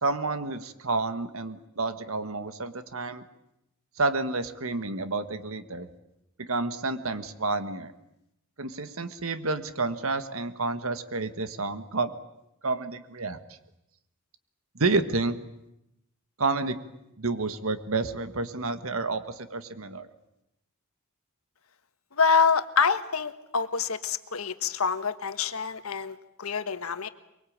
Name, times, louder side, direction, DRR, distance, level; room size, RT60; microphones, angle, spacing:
voice 1, 0.0-3.2 4.0-5.9 6.4-7.9 8.6-12.1 12.6-13.4 14.7-15.4 16.4-16.8 17.2-20.1, right 3 dB, 70° right, 10 dB, 1.6 m, -29 dB
voice 2, 22.2-27.1, left 5 dB, 85° left, 11 dB, 1.4 m, -26 dB
24.0 x 23.0 x 8.8 m, 0.85 s
head